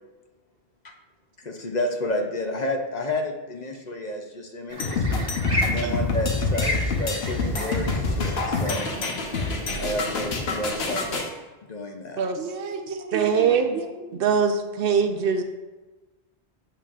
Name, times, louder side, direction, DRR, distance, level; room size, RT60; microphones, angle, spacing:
voice 1, 1.4-5.1 5.6-9.0 9.8-11.3 11.7-12.2, left 1 dB, 45° left, 3 dB, 0.7 m, -30 dB
sound 1, 4.7-11.2, left 1 dB, 30° right, 1.4 m, -34 dB
sound 2, 4.8-11.3, left 3 dB, 70° left, 1.1 m, -26 dB
voice 2, 12.4-14.2, right 5 dB, 90° right, 5 dB, 1.0 m, -34 dB
voice 3, 13.1-13.8 14.2-15.4, right 6 dB, 65° right, 7 dB, 0.8 m, -22 dB
8.4 x 6.9 x 2.4 m, 1.2 s
omnidirectional pair, 1.1 m